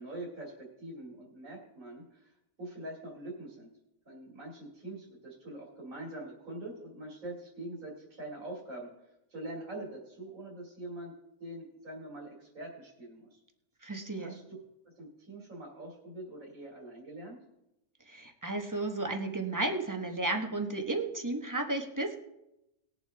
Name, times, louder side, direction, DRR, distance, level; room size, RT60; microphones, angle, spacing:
voice 1, 0.0-2.3 2.6-3.7 4.1-8.9 9.3-11.1 11.4-13.4 14.2-14.4 15.0-17.4, right 1 dB, 65° right, -3 dB, 2.9 m, -44 dB
voice 2, 13.8-14.3 18.1-22.2, right 2 dB, 15° right, 4 dB, 1.0 m, -33 dB
20.0 x 7.1 x 3.5 m, 0.88 s
omnidirectional pair, 1.5 m